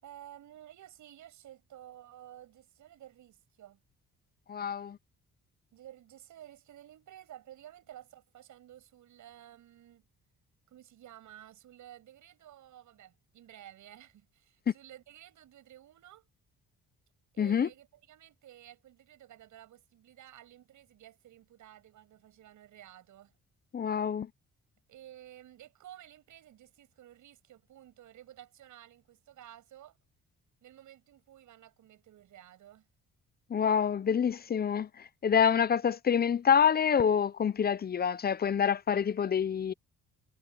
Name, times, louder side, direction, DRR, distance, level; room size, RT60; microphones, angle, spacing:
voice 1, 0.0-3.8 5.7-10.1 10.7-16.3 17.3-23.3 24.9-30.0 30.6-32.9, right 12 dB, 75° right, 7.9 m, -53 dB
voice 2, 4.5-5.0 17.4-17.7 23.7-24.3 33.5-39.7, left 7 dB, 30° left, 0.6 m, -27 dB
cardioid pair, 90°, 30 cm